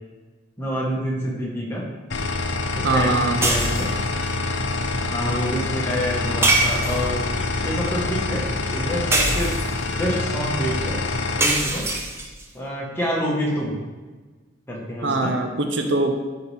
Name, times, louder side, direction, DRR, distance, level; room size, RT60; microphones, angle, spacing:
voice 1, 0.6-1.8 2.7-3.9 4.9-7.3 7.6-9.5 9.9-11.0 11.4-11.9 12.5-13.8 14.7-15.3, equal, 10° left, -4 dB, 1.5 m, -27 dB
sound 1, 2.1-11.5, left 3 dB, 75° left, 0.7 m, -26 dB
voice 2, 2.8-3.4 15.0-16.1, right 2 dB, 75° right, 5 dB, 0.7 m, -22 dB
sound 2, 3.4-4.1 6.4-7.3 9.1-9.9 11.4-12.4, right 2 dB, 15° right, 0.7 m, -23 dB
11.0 x 4.3 x 3.5 m, 1.3 s
head